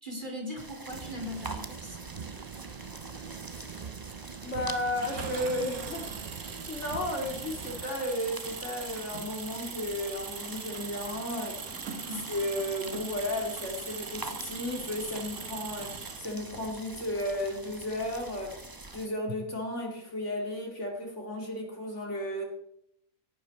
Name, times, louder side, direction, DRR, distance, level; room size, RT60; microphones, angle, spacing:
voice 1, 0.0-2.0 12.1-12.3, left 1 dB, 35° right, 1 dB, 3.7 m, -39 dB
sound 1, 0.6-19.1, right 2 dB, 15° right, 0.9 m, -45 dB
sound 2, 0.9-7.8, right 6 dB, 60° right, 0.4 m, -43 dB
voice 2, 4.4-6.1 6.4-11.6 12.3-18.6 18.9-22.4, left 1 dB, 55° left, 1 dB, 3.1 m, -34 dB
Engine, 5.0-16.6, right 5 dB, 80° right, 1.9 m, -41 dB
17.5 x 11.0 x 4.3 m, 0.74 s
omnidirectional pair, 1.5 m